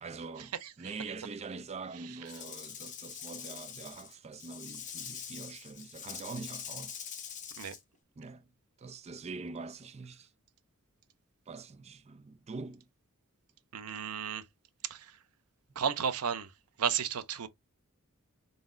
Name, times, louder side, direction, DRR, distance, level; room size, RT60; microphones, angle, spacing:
voice 1, 0.0-6.9 8.2-8.5 8.8-10.3 11.5-12.9, right 4 dB, 30° right, 0.4 m, -44 dB
Rattle / Rattle (instrument), 2.3-7.8, left 8 dB, 35° left, 0.9 m, -44 dB
voice 2, 13.7-14.4 14.9-15.0 15.8-16.5 16.8-17.5, right 7 dB, 85° right, 0.6 m, -32 dB
4.0 x 3.9 x 2.5 m
head